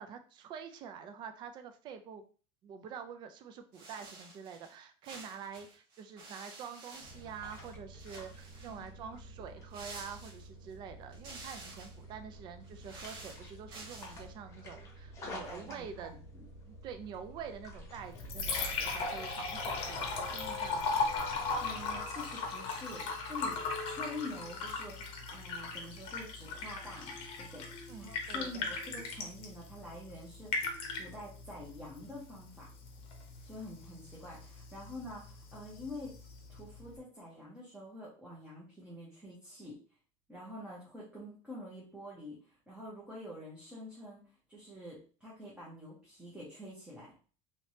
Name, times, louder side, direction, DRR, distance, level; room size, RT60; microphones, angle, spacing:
voice 1, 0.0-2.2 2.6-16.1 16.6-21.0 27.9-28.6, right 7 dB, 30° right, 8 dB, 0.4 m, -47 dB
sound 1, 3.7-4.7 5.0-7.7 8.0-8.8 9.7-10.7 11.1-12.0 12.6-14.2, right 3 dB, 60° right, 1.4 m, -50 dB
sound 2, 7.0-22.0, equal, 20° left, 1.1 m, -50 dB
voice 2, 8.7-9.2 15.3-16.4 21.6-30.7 31.0-32.7 33.4-36.1 36.5-39.8 40.3-44.2 44.5-47.1, left 1 dB, 5° right, -7 dB, 0.9 m, -47 dB
Liquid, 18.0-37.0, left 4 dB, 40° left, 0.8 m, -38 dB
3.2 x 3.1 x 2.7 m, 0.38 s
cardioid pair, 165°, 14 cm